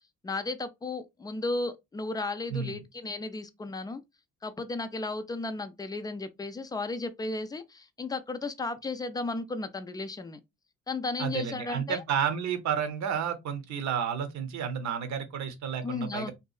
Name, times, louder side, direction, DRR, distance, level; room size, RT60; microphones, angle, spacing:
voice 1, 0.2-4.0 4.4-10.4 10.9-12.0 15.8-16.3, left 3 dB, 15° left, 0.3 m, -34 dB
voice 2, 2.5-2.8 11.2-16.3, right 7 dB, 65° right, 0.7 m, -31 dB
2.7 x 2.3 x 2.3 m
cardioid pair, 90°, 30 cm